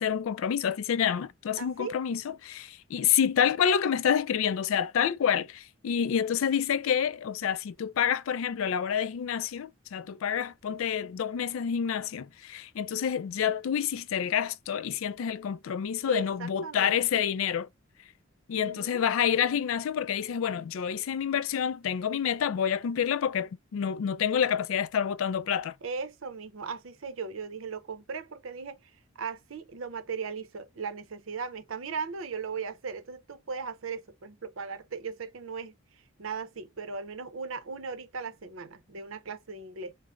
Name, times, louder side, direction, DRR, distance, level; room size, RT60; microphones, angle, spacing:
voice 1, 0.0-17.7 18.5-25.7, left 8 dB, 80° left, 0.3 m, -28 dB
voice 2, 1.6-2.0 16.1-17.2 18.5-19.0 25.8-28.9 29.2-35.7 36.2-39.9, right 5 dB, 80° right, 0.6 m, -38 dB
3.7 x 2.0 x 3.1 m
head